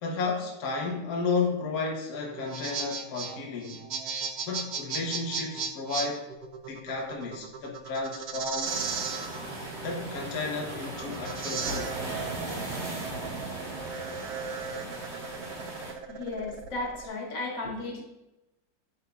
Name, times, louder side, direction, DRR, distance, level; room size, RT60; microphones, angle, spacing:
voice 1, 0.0-3.8 4.4-6.3 6.7-8.9 9.8-12.0, left 4 dB, 60° left, 0 dB, 1.4 m, -32 dB
sound 1, 2.3-17.1, right 5 dB, 85° right, 0.5 m, -36 dB
sound 2, 8.6-15.9, right 1 dB, 40° right, 1.5 m, -37 dB
voice 2, 16.1-18.0, left 2 dB, 90° left, -3 dB, 2.6 m, -34 dB
9.0 x 8.3 x 2.3 m, 0.96 s
omnidirectional pair, 1.9 m